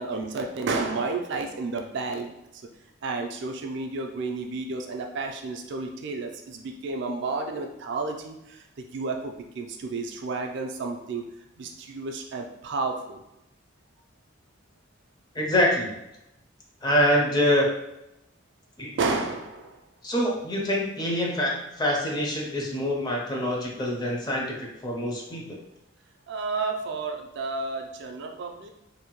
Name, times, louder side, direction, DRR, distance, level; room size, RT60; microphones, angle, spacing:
voice 1, 0.0-2.3 3.0-8.6 8.9-11.2 11.6-13.2 19.0-19.8 26.3-28.7, right 3 dB, 60° right, 3 dB, 0.3 m, -31 dB
voice 2, 15.3-15.9 16.8-17.7 18.8-18.9 20.0-24.5 24.8-25.6, left 1 dB, 20° left, -2 dB, 0.5 m, -25 dB
2.6 x 2.1 x 2.8 m, 0.87 s
head